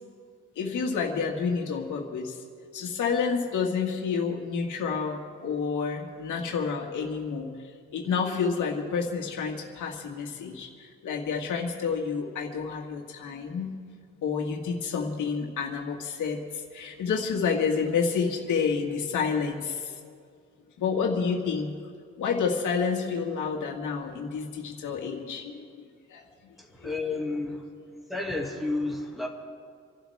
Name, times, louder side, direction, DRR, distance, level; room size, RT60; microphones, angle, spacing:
voice 1, 0.6-2.4 2.7-7.5 7.9-13.7 14.2-16.4 16.7-19.9 20.8-21.7 22.2-25.6 26.1-26.2 26.8-27.0, left 5 dB, 85° left, 1 dB, 2.1 m, -29 dB
voice 2, 26.6-27.7 28.1-29.3, left 2 dB, ahead, -3 dB, 2.4 m, -31 dB
28.5 x 12.0 x 3.6 m, 2.1 s
cardioid pair, 110°, 30 cm